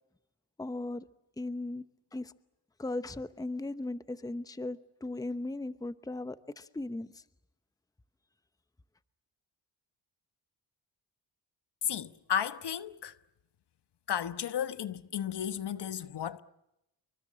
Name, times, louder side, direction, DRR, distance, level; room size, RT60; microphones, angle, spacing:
voice 1, 0.6-1.1 1.4-1.8 2.1-2.3 2.8-7.2, left 2 dB, 10° left, 0.9 m, -37 dB
voice 2, 11.8-13.1 14.1-16.4, left 9 dB, 60° left, 1.2 m, -33 dB
28.0 x 24.0 x 7.5 m
cardioid pair, 85°, 45 cm